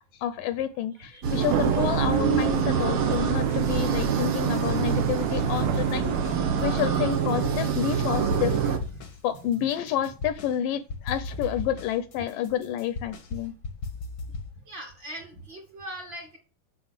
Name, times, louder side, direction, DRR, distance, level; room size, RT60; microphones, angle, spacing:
voice 1, 0.1-6.1 6.6-8.6 9.2-13.5, left 10 dB, 80° left, 2.1 m, -29 dB
voice 2, 1.0-1.6 8.2-8.6 9.6-9.7 14.7-16.4, right 1 dB, 40° right, 2.0 m, -42 dB
sound 1, 1.2-8.8, right 7 dB, 65° right, 1.3 m, -26 dB
sound 2, 1.4-7.1, right 10 dB, 80° right, 2.8 m, -30 dB
sound 3, 3.0-3.9 4.2-5.1 5.4-7.8 8.1-10.6 10.9-14.5, left 3 dB, 60° left, 1.1 m, -37 dB
7.9 x 7.0 x 7.3 m
omnidirectional pair, 4.2 m